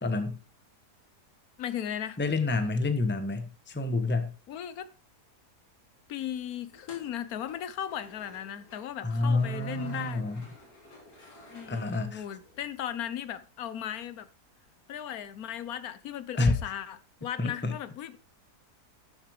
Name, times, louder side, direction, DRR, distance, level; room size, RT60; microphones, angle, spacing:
voice 1, 0.0-0.4 2.2-4.3 9.0-10.4 11.7-12.2 16.4-16.6 17.4-17.7, left 3 dB, 10° left, 1.1 m, -28 dB
voice 2, 1.6-2.2 4.5-4.9 6.1-10.3 11.5-14.3 14.9-18.2, left 10 dB, 70° left, 1.4 m, -37 dB
sound 1, 6.7-12.7, left 1 dB, 85° left, 4.0 m, -53 dB
13.0 x 7.6 x 4.9 m
omnidirectional pair, 1.7 m